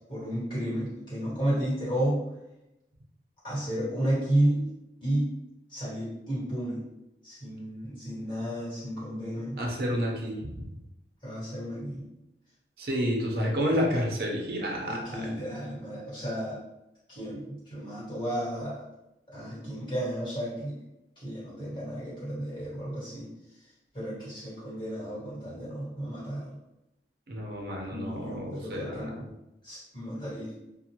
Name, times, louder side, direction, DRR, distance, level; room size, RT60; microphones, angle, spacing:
voice 1, 0.1-2.3 3.4-4.7 5.0-5.3 5.7-6.8 7.2-9.6 11.2-12.1 14.8-16.6 17.1-18.8 19.3-20.8 21.2-23.3 23.9-26.6 27.9-29.3 29.6-30.5, right 1 dB, 25° left, -9 dB, 1.5 m, -32 dB
voice 2, 9.6-10.6 12.8-15.3 27.3-29.1, equal, 55° right, -1 dB, 0.6 m, -30 dB
2.4 x 2.1 x 2.8 m, 0.92 s
head